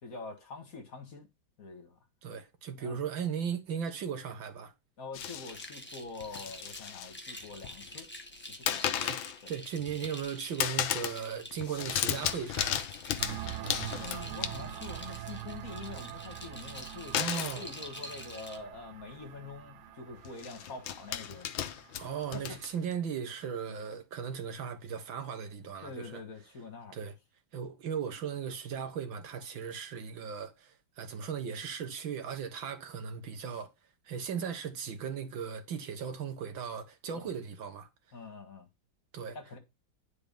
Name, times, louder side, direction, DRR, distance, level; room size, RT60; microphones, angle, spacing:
voice 1, 0.0-1.3 1.6-2.0 2.8-3.0 5.0-8.1 8.5-9.1 9.4-9.5 14.0-21.5 22.3-22.6 23.7-23.9 25.8-27.0 37.1-37.4 38.1-38.7 39.3-39.6, left 4 dB, 50° left, 2.0 m, -45 dB
voice 2, 2.2-4.7 9.0-9.2 9.5-12.8 17.1-17.6 22.0-26.2 26.9-27.1 27.5-33.7 34.1-37.9 39.1-39.4, right 7 dB, 85° right, 2.2 m, -37 dB
sound 1, 5.1-5.7 6.2-7.1 7.4-8.0 8.7-9.4 9.8-10.3 10.6-11.2 11.5-14.9 17.1-17.6 18.6-18.7 19.0-19.2 20.2-22.9, left 10 dB, 85° left, 1.6 m, -34 dB
sound 2, 5.2-18.6, left 1 dB, 5° left, 1.4 m, -47 dB
sound 3, 13.2-22.7, right 13 dB, 65° right, 1.2 m, -44 dB
9.8 x 5.0 x 5.3 m
omnidirectional pair, 2.1 m